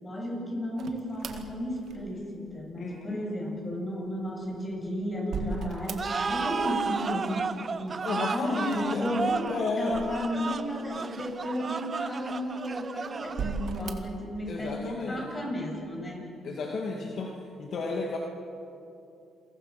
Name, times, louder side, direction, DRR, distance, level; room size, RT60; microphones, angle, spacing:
voice 1, 0.0-16.3, left 1 dB, 25° left, 0 dB, 8.0 m, -33 dB
sound 1, 0.8-2.4 4.3-6.5 6.7-7.5 8.6-10.7 11.3-11.4 12.2-12.8 13.3-14.2, right 5 dB, 65° right, 1.9 m, -39 dB
voice 2, 2.8-3.2 8.0-9.0 9.5-10.0 14.5-15.3 16.4-17.3 17.6-18.2, left 4 dB, 60° left, 0 dB, 2.4 m, -32 dB
sound 2, 6.0-13.8, right 5 dB, 40° right, 0.9 m, -33 dB
28.5 x 22.5 x 6.2 m, 2.8 s
cardioid pair, 90°, 0 cm